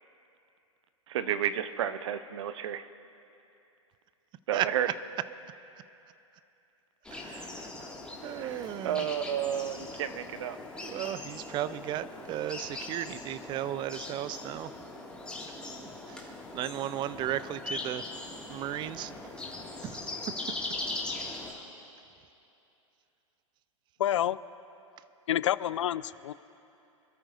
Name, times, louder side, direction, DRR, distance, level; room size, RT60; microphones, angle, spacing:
voice 1, 1.1-2.9 4.5-4.9 7.5-7.9 8.2-10.6, right 10 dB, 60° right, 12 dB, 0.8 m, -32 dB
sound 1, 7.0-21.5, left 2 dB, 5° left, 2.1 m, -40 dB
voice 2, 7.1-7.6 8.2-9.1 10.8-14.7 15.6-18.1 18.5-19.1 19.4-19.5 19.8-20.2, right 12 dB, 25° right, 16 dB, 0.5 m, -35 dB
voice 3, 24.0-24.4 25.3-26.3, left 11 dB, 65° left, 18 dB, 0.4 m, -28 dB
26.5 x 13.5 x 2.6 m, 2.8 s
figure-of-eight pair, 100°, 17 cm